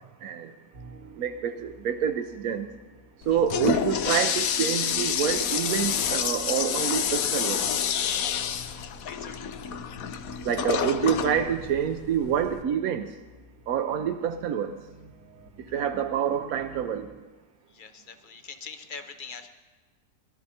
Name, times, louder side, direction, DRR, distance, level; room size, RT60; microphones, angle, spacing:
voice 1, 0.2-0.5 1.2-2.7 3.3-7.7 10.4-13.1 13.7-14.8 15.7-17.1, right 9 dB, 70° right, 6 dB, 1.0 m, -27 dB
sound 1, 0.7-17.2, right 2 dB, 55° right, 1.3 m, -50 dB
Toilet flush, 3.2-12.6, left 8 dB, 65° left, 1.0 m, -28 dB
voice 2, 9.1-9.4 17.7-19.5, left 5 dB, 45° left, 7 dB, 0.7 m, -43 dB
21.5 x 12.5 x 2.8 m, 1.3 s
omnidirectional pair, 1.8 m